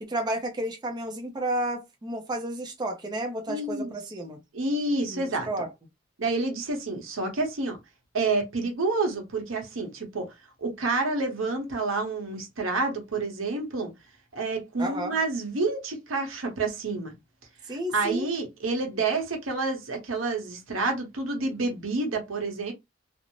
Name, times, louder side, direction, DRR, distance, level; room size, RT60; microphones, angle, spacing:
voice 1, 0.0-4.4 5.1-5.7 14.8-15.2 17.7-18.3, right 1 dB, 20° right, 0.5 m, -32 dB
voice 2, 3.5-3.9 4.5-5.5 6.2-7.8 8.1-10.3 10.6-13.9 14.3-17.1 17.7-22.7, right 3 dB, 90° right, 0.9 m, -29 dB
2.5 x 2.0 x 3.0 m
head